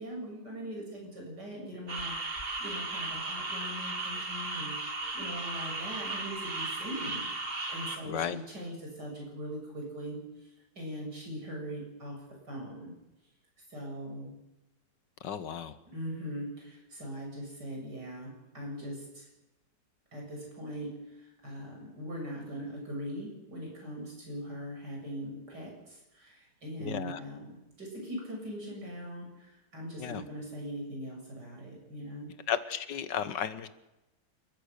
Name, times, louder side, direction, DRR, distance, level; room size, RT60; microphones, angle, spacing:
voice 1, 0.0-12.9 13.7-14.3 15.9-19.3 20.1-32.3, equal, 70° right, -1 dB, 7.7 m, -41 dB
sound 1, 1.9-8.0, right 2 dB, 30° right, 2.0 m, -36 dB
voice 2, 8.1-8.4 15.2-15.8 26.8-27.2 30.0-30.2 32.5-33.7, left 8 dB, 80° left, 13 dB, 1.8 m, -34 dB
29.0 x 14.0 x 6.8 m, 0.96 s
omnidirectional pair, 1.9 m